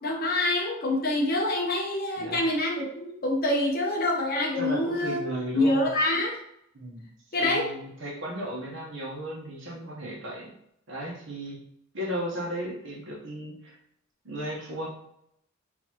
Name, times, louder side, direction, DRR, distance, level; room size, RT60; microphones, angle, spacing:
voice 1, 0.0-5.2 5.5-6.3 7.3-7.7, left 1 dB, 45° left, -1 dB, 1.0 m, -26 dB
voice 2, 4.6-5.9 6.7-7.1 7.4-10.5 10.9-11.6 11.9-13.8 14.2-14.9, equal, 60° right, -3 dB, 1.2 m, -35 dB
4.0 x 3.6 x 3.0 m, 0.74 s
head